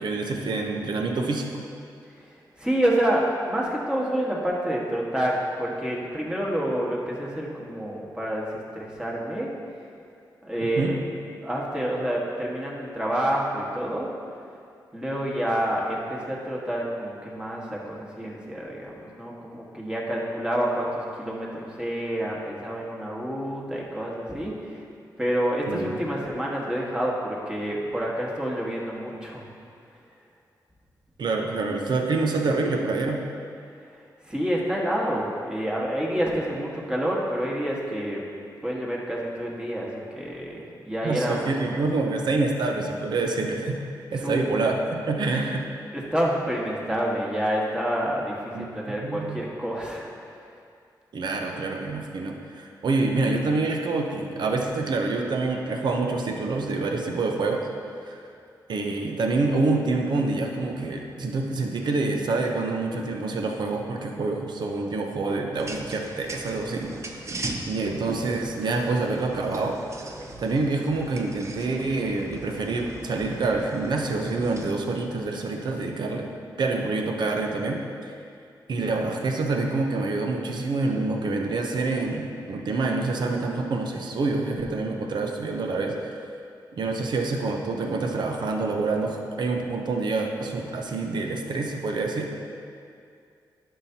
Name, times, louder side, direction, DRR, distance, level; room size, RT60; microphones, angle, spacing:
voice 1, 0.0-1.6 10.8-10.9 25.7-26.0 31.2-33.2 41.0-43.8 44.1-45.6 48.5-49.4 51.1-57.6 58.1-58.2 58.7-66.9 67.7-69.8 70.4-76.3 76.6-77.8 78.7-85.9 86.8-92.3, right 3 dB, 70° right, 2 dB, 0.8 m, -27 dB
voice 2, 2.6-9.5 10.4-11.0 11.4-14.1 14.9-24.8 25.2-29.4 34.2-38.2 38.6-41.4 44.1-44.4 45.9-50.1, right 1 dB, 10° right, -4 dB, 1.5 m, -28 dB
sound 1, 65.5-74.7, right 2 dB, 40° right, 0.7 m, -39 dB
11.5 x 5.7 x 2.8 m, 2.4 s
cardioid pair, 85°, 8 cm